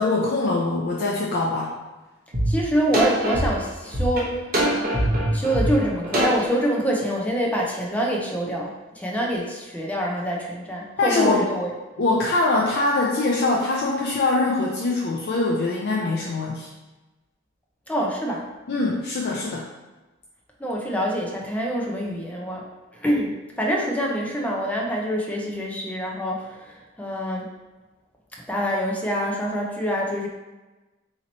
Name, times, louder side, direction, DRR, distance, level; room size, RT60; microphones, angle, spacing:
voice 1, 0.0-1.7 11.0-11.5 12.0-16.7 18.7-19.7, left 2 dB, 55° left, -3 dB, 0.4 m, -23 dB
sound 1, 2.3-2.5 2.9-6.5, equal, 45° right, 0.9 m, -23 dB
voice 2, 2.5-4.5 5.3-11.7 17.9-18.4 20.6-22.7 22.9-27.5 28.5-30.3, equal, 10° left, -2 dB, 0.5 m, -26 dB
3.0 x 2.8 x 4.0 m, 1.1 s
head